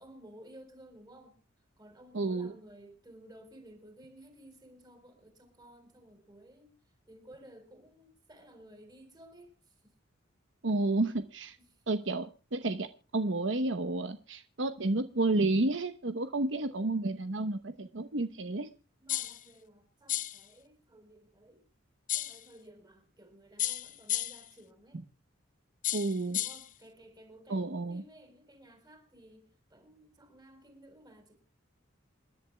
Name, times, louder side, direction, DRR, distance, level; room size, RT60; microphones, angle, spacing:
voice 1, 0.0-1.4 1.8-6.7 7.1-9.9 11.6-11.8 16.5-17.0 19.0-21.6 22.1-25.0 26.3-31.4, right 1 dB, 20° right, 6 dB, 4.2 m, -55 dB
voice 2, 2.1-2.5 10.6-11.6 11.9-12.9 13.1-18.7 25.9-26.4 27.5-28.0, right 2 dB, 70° right, 10 dB, 0.9 m, -31 dB
sound 1, 19.1-19.4 20.1-20.4 22.1-22.4 23.6-24.5 25.8-26.7, left 12 dB, 40° left, 0.6 m, -33 dB
28.5 x 11.0 x 2.2 m, 0.34 s
head